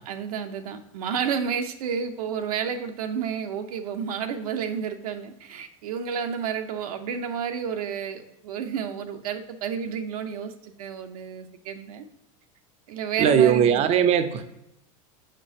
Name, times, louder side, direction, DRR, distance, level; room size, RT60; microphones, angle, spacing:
voice 1, 0.1-12.1 12.9-14.1, right 7 dB, 90° right, 6 dB, 0.7 m, -31 dB
voice 2, 13.2-14.5, right 8 dB, 35° right, 9 dB, 0.5 m, -19 dB
6.8 x 5.2 x 2.7 m, 0.84 s
supercardioid pair, 115°, 18 cm